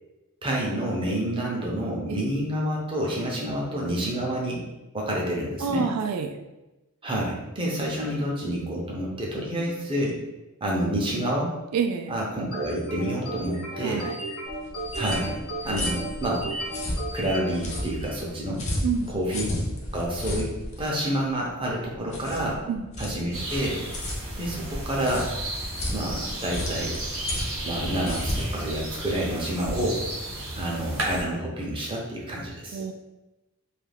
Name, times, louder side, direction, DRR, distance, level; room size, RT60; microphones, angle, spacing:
voice 1, 0.4-4.6 4.9-5.9 7.0-10.2 10.6-11.5 12.1-14.0 14.9-15.4 15.6-16.5 17.1-18.6 19.1-19.5 19.9-22.6 23.0-23.8 24.4-25.3 25.9-27.0 27.6-30.0 30.6-32.8, right 1 dB, 25° right, -3 dB, 0.5 m, -28 dB
voice 2, 5.6-6.4 9.6-9.7 11.7-12.1 13.8-14.2 18.8-19.1 22.7-22.9 32.7-32.9, right 5 dB, 90° right, 10 dB, 0.3 m, -28 dB
sound 1, 12.5-18.3, right 1 dB, 75° left, 1.0 m, -34 dB
sound 2, 14.5-29.6, left 1 dB, 30° left, 0.4 m, -34 dB
sound 3, 23.3-31.2, right 1 dB, 60° right, 0.7 m, -34 dB
2.3 x 2.2 x 3.2 m, 1.0 s
head